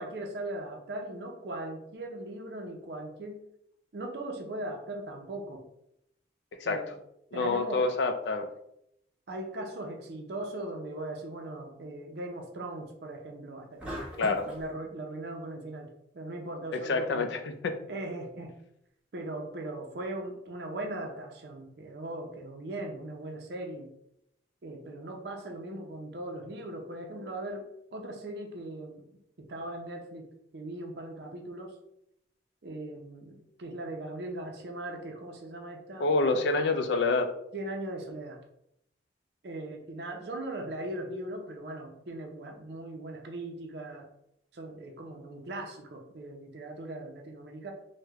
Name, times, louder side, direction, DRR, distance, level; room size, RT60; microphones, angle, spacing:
voice 1, 0.0-3.4 3.9-5.6 6.6-6.9 7.3-7.8 9.3-15.9 16.1-17.3 17.9-18.5 19.1-24.0 24.6-27.7 27.9-29.0 29.4-31.7 32.6-36.5 37.5-38.4 39.4-44.1 44.5-47.7, right 1 dB, 60° right, 2 dB, 0.5 m, -39 dB
voice 2, 7.3-8.5 14.2-14.5 16.7-17.7 36.0-37.3, left 3 dB, 70° left, 8 dB, 0.4 m, -27 dB
sound 1, 13.8-14.7, equal, 5° right, 0.8 m, -39 dB
3.2 x 2.1 x 3.4 m, 0.78 s
head